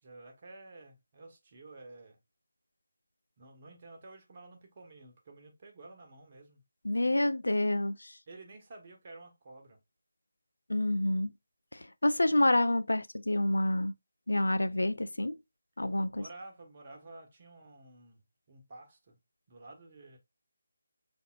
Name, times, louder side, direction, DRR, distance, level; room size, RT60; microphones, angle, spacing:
voice 1, 0.0-2.2 3.4-6.6 8.3-9.8 16.1-19.2 19.5-20.2, right 2 dB, 35° right, 1.2 m, -51 dB
voice 2, 6.8-8.1 10.7-11.3 11.7-13.9 14.3-15.3 15.8-16.2, left 1 dB, 75° left, 0.4 m, -28 dB
5.6 x 3.5 x 2.4 m
figure-of-eight pair, 155°, 0 cm